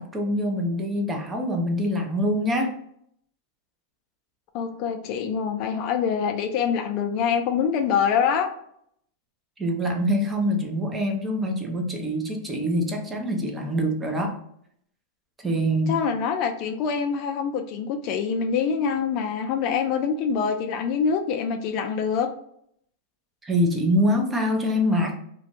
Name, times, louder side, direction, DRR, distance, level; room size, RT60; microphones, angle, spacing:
voice 1, 0.0-2.8 9.6-14.4 15.4-15.9 23.4-25.2, equal, 15° right, 3 dB, 0.6 m, -24 dB
voice 2, 4.5-8.5 15.9-22.3, left 6 dB, 50° left, 5 dB, 0.4 m, -25 dB
2.5 x 2.2 x 2.8 m, 0.69 s
hypercardioid pair, 120°, 0 cm